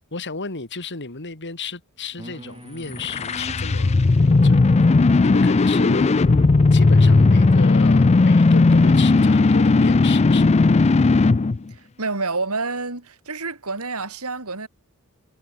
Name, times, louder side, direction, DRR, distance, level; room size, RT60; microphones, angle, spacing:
voice 1, 0.1-4.1 4.4-4.6 5.2-6.1 6.7-10.7, left 4 dB, 55° left, 2.9 m, -33 dB
sound 1, 2.2-8.6, right 1 dB, 25° right, 3.2 m, -40 dB
sound 2, 2.9-11.6, left 3 dB, 30° left, 0.4 m, -16 dB
voice 2, 11.7-14.7, right 3 dB, 75° right, 4.9 m, -28 dB
head